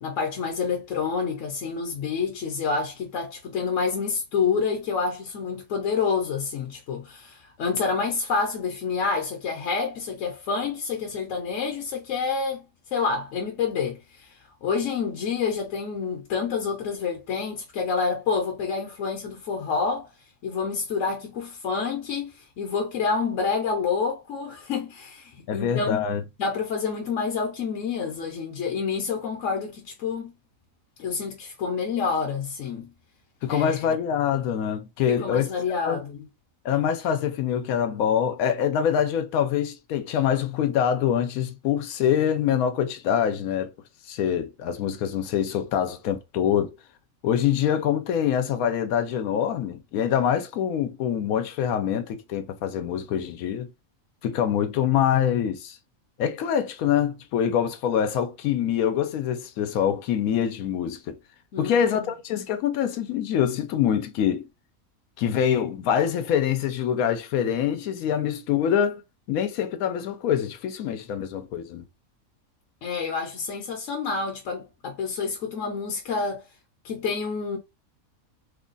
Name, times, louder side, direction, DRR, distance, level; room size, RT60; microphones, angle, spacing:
voice 1, 0.0-12.6 12.9-20.1 20.4-26.0 26.4-30.3 31.0-32.9 33.5-33.8 35.1-36.3 61.5-62.1 72.8-76.4 76.8-77.6, left 5 dB, 65° left, 1.0 m, -28 dB
voice 2, 25.5-26.2 33.4-35.5 35.8-36.0 36.6-43.7 44.1-46.7 47.2-53.7 54.2-55.8 56.2-61.2 61.6-64.5 65.2-69.0 69.3-71.8, left 9 dB, 90° left, 1.0 m, -25 dB
3.1 x 2.2 x 3.8 m
omnidirectional pair, 1.4 m